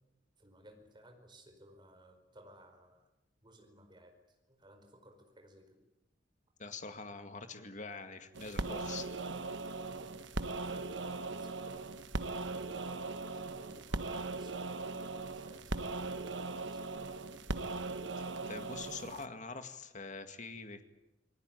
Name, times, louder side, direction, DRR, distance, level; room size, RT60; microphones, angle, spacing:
voice 1, 0.4-3.1 3.4-5.8 10.5-11.9 12.3-16.8, right 1 dB, 25° right, 5 dB, 4.8 m, -59 dB
voice 2, 6.6-9.1 17.3-17.5 18.2-20.8, left 4 dB, 40° left, 7 dB, 2.2 m, -45 dB
sound 1, 8.3-19.3, right 3 dB, 70° right, 1.2 m, -39 dB
28.5 x 20.0 x 9.2 m, 0.93 s
head